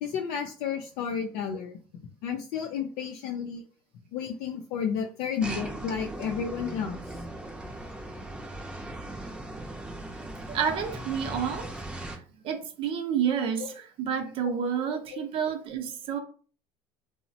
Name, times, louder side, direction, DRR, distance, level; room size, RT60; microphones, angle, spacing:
voice 1, 0.0-1.8 2.2-3.6 4.1-7.2 13.6-13.7 14.4-14.5 15.1-15.2, left 7 dB, 70° left, 0.4 m, -32 dB
sound 1, 5.4-12.2, right 1 dB, 10° right, 0.6 m, -38 dB
voice 2, 10.5-12.2 12.4-13.7 14.0-16.2, right 7 dB, 50° right, 0.7 m, -29 dB
2.9 x 2.0 x 2.7 m
supercardioid pair, 105°, 11 cm